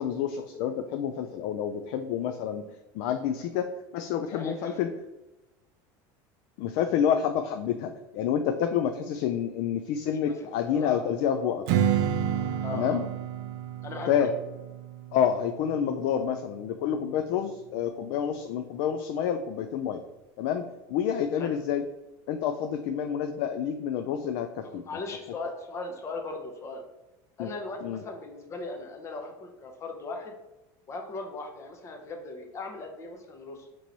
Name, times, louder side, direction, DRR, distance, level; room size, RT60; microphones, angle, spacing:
voice 1, 0.0-4.9 6.6-11.6 12.7-13.0 14.1-14.3 15.1-20.0 20.4-20.6 20.9-21.8 22.3-24.8 27.4-27.5 27.8-28.0, left 8 dB, 70° left, 7 dB, 0.3 m, -28 dB
voice 2, 4.3-4.8 10.3-10.4 10.6-11.0 11.3-11.5 12.6-13.0 13.8-14.3 21.4-21.5 24.6-26.8 27.4-30.3 30.9-33.7, left 3 dB, 30° left, 3 dB, 0.7 m, -38 dB
Strum, 11.7-16.9, right 9 dB, 70° right, 0.5 m, -31 dB
4.5 x 3.0 x 3.9 m, 0.98 s
supercardioid pair, 135°, 10 cm